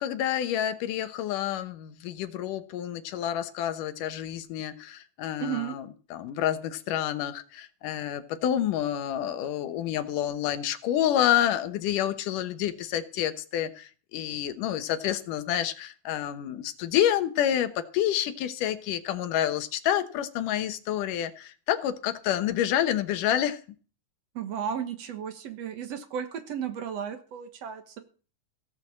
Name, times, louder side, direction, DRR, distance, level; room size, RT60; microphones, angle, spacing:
voice 1, 0.0-23.6, left 11 dB, 85° left, 11 dB, 2.7 m, -28 dB
voice 2, 5.4-5.8 24.4-28.0, right 8 dB, 60° right, 9 dB, 2.1 m, -34 dB
16.0 x 7.5 x 7.3 m, 0.38 s
omnidirectional pair, 3.6 m